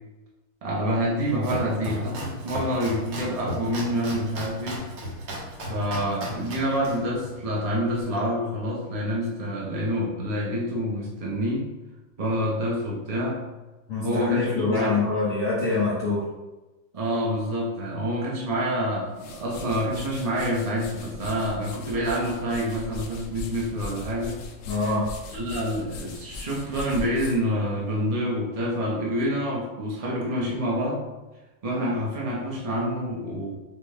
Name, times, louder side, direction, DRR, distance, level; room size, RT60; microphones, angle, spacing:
voice 1, 0.6-4.9 5.7-11.7 12.2-13.4 14.0-15.0 16.9-24.4 25.3-31.0 31.6-33.5, equal, 40° right, -3 dB, 0.5 m, -27 dB
Domestic sounds home sounds, 1.1-8.0, equal, 65° right, 1.6 m, -35 dB
voice 2, 13.9-16.2 24.7-25.1, left 3 dB, 50° left, -8 dB, 1.3 m, -25 dB
sound 1, 18.9-28.3, left 4 dB, 75° left, 1.2 m, -40 dB
5.9 x 2.3 x 3.5 m, 1.1 s
omnidirectional pair, 2.1 m